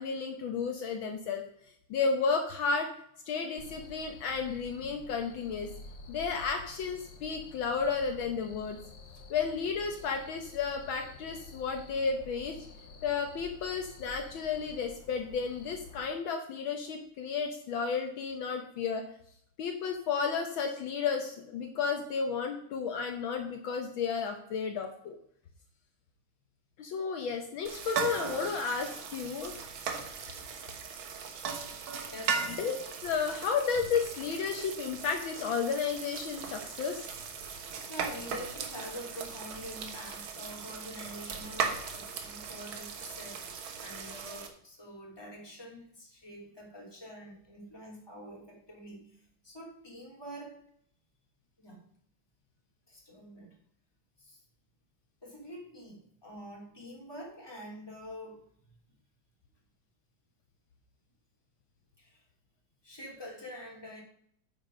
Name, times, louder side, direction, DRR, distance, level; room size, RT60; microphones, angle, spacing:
voice 1, 0.0-1.4 1.9-2.9 3.3-5.7 6.1-8.8 9.3-12.6 13.0-19.0 19.6-25.2 26.8-29.6 32.6-32.7 33.0-37.1, left 5 dB, 70° left, 5 dB, 1.6 m, -32 dB
Cricket, 3.6-16.1, left 3 dB, 90° left, 2.4 m, -50 dB
sound 1, 27.7-44.5, right 6 dB, 70° right, 2.0 m, -38 dB
voice 2, 32.1-32.7 37.4-43.4 43.8-50.6 51.6-51.8 52.9-53.6 54.2-54.4 55.2-58.4 62.0-62.2 62.8-64.0, equal, 10° left, -2 dB, 2.7 m, -46 dB
9.0 x 7.3 x 5.1 m, 0.67 s
omnidirectional pair, 2.4 m